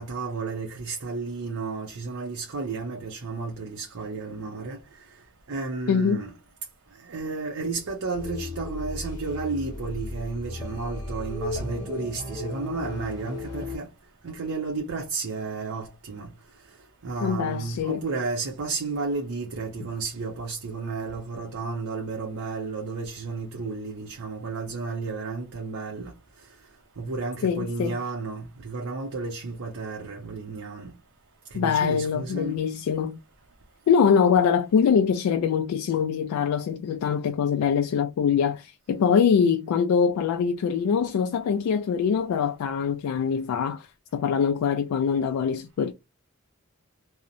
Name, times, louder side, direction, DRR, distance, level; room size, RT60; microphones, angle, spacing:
voice 1, 0.0-4.8 5.5-6.3 7.1-13.9 14.2-16.3 17.0-26.1 27.0-30.9 31.5-32.6, right 4 dB, 75° right, 0.6 m, -32 dB
voice 2, 5.9-6.2 17.2-18.0 27.4-28.0 31.5-33.2 33.9-43.9 44.1-45.9, left 7 dB, 85° left, 0.3 m, -23 dB
sound 1, 8.1-13.8, left 2 dB, 20° left, 0.9 m, -35 dB
2.8 x 2.0 x 2.5 m
head